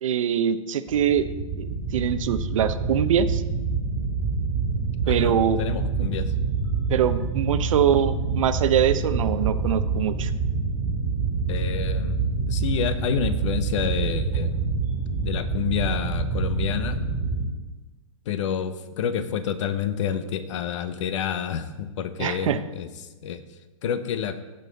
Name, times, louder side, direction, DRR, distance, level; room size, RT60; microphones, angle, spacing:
voice 1, 0.0-1.3 1.6-3.4 5.1-5.6 6.0-6.1 6.9-10.3 22.2-22.6, right 9 dB, 70° right, 12 dB, 0.7 m, -23 dB
sound 1, 0.9-17.4, right 4 dB, 20° right, 1.9 m, -26 dB
voice 2, 5.0-6.3 11.5-14.6 15.2-17.0 18.2-22.9 23.2-24.4, left 8 dB, 60° left, 11 dB, 0.9 m, -29 dB
15.0 x 5.5 x 4.0 m, 1.2 s
hypercardioid pair, 140°, 17 cm